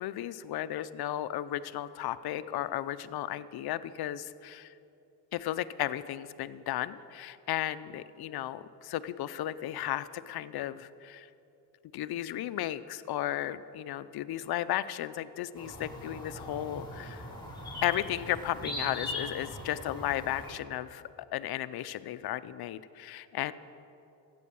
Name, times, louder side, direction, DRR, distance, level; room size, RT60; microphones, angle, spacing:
voice 1, 0.0-4.7 5.3-11.3 11.9-17.2 17.8-23.5, left 13 dB, 60° left, 15 dB, 0.6 m, -34 dB
sound 1, 15.6-20.5, left 1 dB, 10° left, 3.6 m, -40 dB
14.5 x 8.5 x 7.0 m, 2.8 s
supercardioid pair, 75°, 42 cm